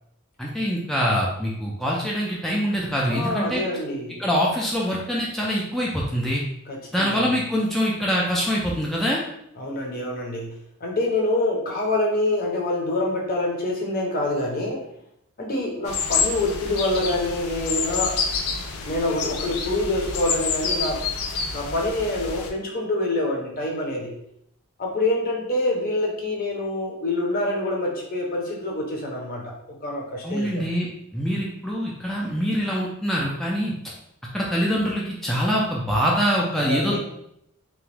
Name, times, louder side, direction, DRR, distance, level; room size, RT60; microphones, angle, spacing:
voice 1, 0.4-3.6 4.2-6.4 6.9-9.2 30.2-33.7 34.3-37.0, equal, ahead, -4 dB, 0.3 m, -24 dB
voice 2, 3.1-4.2 6.7-7.3 9.6-10.5 10.8-14.8 15.4-18.2 18.8-21.0 21.5-24.1 24.8-30.6 36.6-37.0, left 2 dB, 45° left, -1 dB, 0.7 m, -26 dB
sound 1, 15.9-22.5, left 5 dB, 90° left, 0.4 m, -28 dB
2.9 x 2.2 x 3.2 m, 0.75 s
head